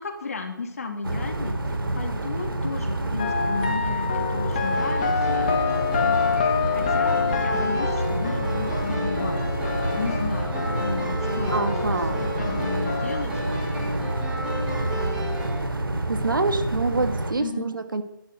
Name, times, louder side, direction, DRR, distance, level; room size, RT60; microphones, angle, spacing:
voice 1, 0.0-9.4 10.0-13.4 17.4-17.7, left 4 dB, 45° left, 4 dB, 2.9 m, -34 dB
sound 1, 1.0-17.3, right 1 dB, 85° right, 3.3 m, -28 dB
sound 2, 3.2-11.2 11.5-13.2, left 6 dB, 25° left, 1.5 m, -27 dB
sound 3, 4.5-15.6, equal, 5° right, 2.3 m, -33 dB
voice 2, 11.5-12.3 16.1-18.0, right 3 dB, 70° right, 8 dB, 2.2 m, -26 dB
12.0 x 11.5 x 9.2 m, 0.84 s
figure-of-eight pair, 170°, 11 cm